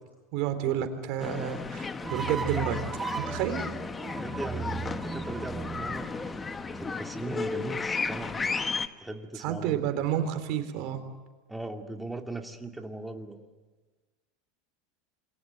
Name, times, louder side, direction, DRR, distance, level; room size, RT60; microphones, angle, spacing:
voice 1, 0.3-2.8 3.2-3.6 9.4-11.0, right 10 dB, 55° right, 8 dB, 3.8 m, -30 dB
sound 1, 1.2-8.9, left 4 dB, 20° left, 1.4 m, -34 dB
sound 2, 2.0-7.2, right 6 dB, 25° right, 0.7 m, -38 dB
voice 2, 4.0-6.4 6.8-8.5 9.0-9.8 11.5-13.5, right 2 dB, 5° right, 4 dB, 2.5 m, -38 dB
28.0 x 23.5 x 8.1 m, 1.3 s
hypercardioid pair, 90°, 0 cm